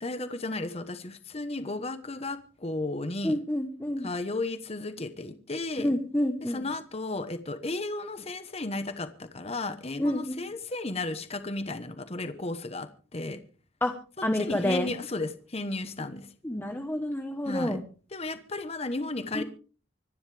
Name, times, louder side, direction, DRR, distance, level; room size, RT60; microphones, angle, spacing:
voice 1, 0.0-3.4 4.0-5.9 6.4-13.4 14.3-16.3 17.5-17.8 18.1-19.4, left 2 dB, 30° left, 10 dB, 1.1 m, -34 dB
voice 2, 3.2-4.1 5.8-6.7 10.0-10.4 13.8-13.9 14.2-14.9 16.4-17.8 19.3-19.4, left 1 dB, 10° left, 5 dB, 1.1 m, -28 dB
25.5 x 11.0 x 3.4 m, 0.38 s
head